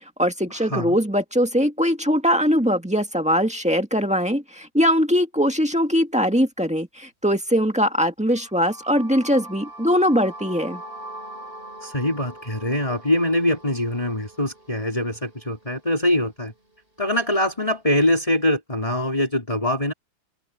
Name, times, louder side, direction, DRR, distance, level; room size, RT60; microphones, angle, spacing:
voice 1, 0.2-10.8, equal, 5° right, 1.6 m, -21 dB
sound 1, 8.3-16.2, right 1 dB, 25° right, 6.8 m, -42 dB
voice 2, 11.8-16.5 17.0-19.9, left 1 dB, 15° left, 4.0 m, -23 dB
open air
omnidirectional pair, 2.2 m